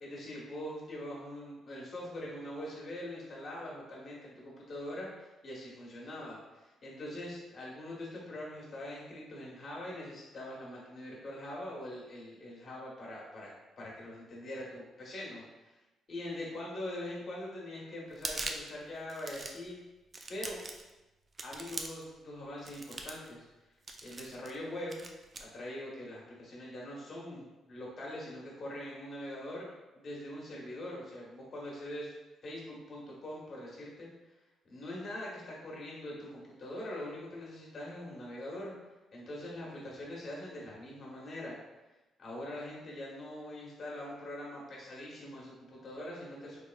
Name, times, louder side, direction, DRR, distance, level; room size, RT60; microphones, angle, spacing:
voice 1, 0.0-13.5 13.8-15.7 16.1-19.8 20.3-20.6 21.4-23.5 24.0-25.0 25.4-29.6 29.9-32.1 32.4-34.1 34.6-38.7 39.1-41.6 42.2-46.6, left 1 dB, 45° left, -4 dB, 1.3 m, -43 dB
sound 1, 18.1-18.7 19.1-19.7 20.1-20.9 21.4-22.1 22.6-23.3 23.9-24.6 24.9-25.4, right 3 dB, 35° right, 0.4 m, -41 dB
3.4 x 3.1 x 2.3 m, 1.1 s
cardioid pair, 90°, 0 cm